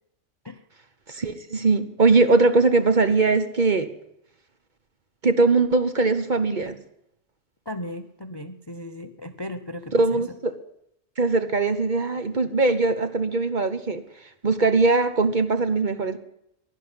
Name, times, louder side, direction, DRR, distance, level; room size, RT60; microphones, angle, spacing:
voice 1, 1.1-3.9 5.2-6.8 9.9-10.5 11.2-14.0 14.4-16.2, right 3 dB, 40° right, 9 dB, 1.1 m, -21 dB
voice 2, 7.7-10.4, left 1 dB, 25° left, 10 dB, 0.6 m, -36 dB
11.5 x 11.0 x 9.6 m, 0.78 s
omnidirectional pair, 1.4 m